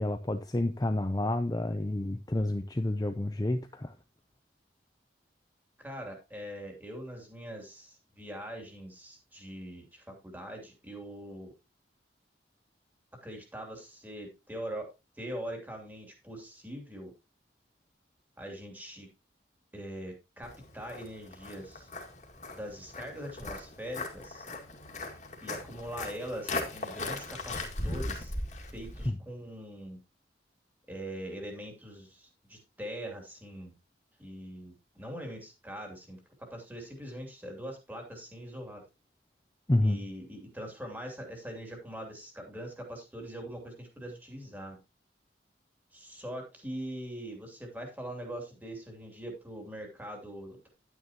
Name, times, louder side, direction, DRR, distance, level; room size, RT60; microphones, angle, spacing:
voice 1, 0.0-3.9 29.1-29.2 39.7-40.0, left 1 dB, 20° left, 0.5 m, -29 dB
voice 2, 5.8-11.5 13.2-17.1 18.4-19.1 19.7-21.9 22.5-24.5 25.4-28.3 28.7-30.0 30.9-33.7 34.2-38.8 39.8-44.8 45.9-50.7, equal, 10° right, 2.7 m, -42 dB
Walk footsteps, 20.4-29.1, left 2 dB, 40° left, 2.0 m, -38 dB
10.5 x 9.4 x 2.9 m
head